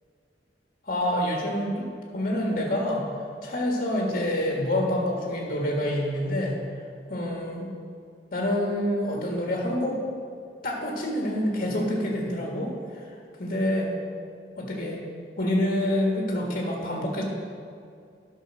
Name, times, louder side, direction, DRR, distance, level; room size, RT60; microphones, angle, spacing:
voice 1, 0.8-3.0 3.4-6.5 7.1-7.7 8.3-10.0 10.6-13.1 13.4-13.9 14.6-15.0 15.4-17.2, left 1 dB, 55° left, -2 dB, 1.7 m, -27 dB
11.0 x 5.5 x 6.3 m, 2.3 s
head